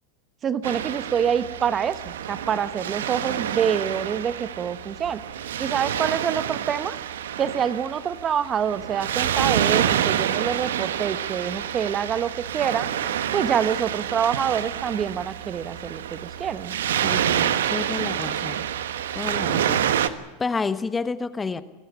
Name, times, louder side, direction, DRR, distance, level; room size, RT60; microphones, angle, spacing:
voice 1, 0.4-5.2 5.6-7.0 7.4-12.9 13.3-16.7, right 8 dB, 30° right, 13 dB, 1.2 m, -26 dB
Waves surf, 0.6-20.1, right 10 dB, 80° right, 1.2 m, -27 dB
voice 2, 17.0-18.6 19.1-21.6, left 4 dB, 15° left, 13 dB, 1.2 m, -30 dB
24.0 x 14.5 x 9.8 m, 1.2 s
hypercardioid pair, 100°, 0 cm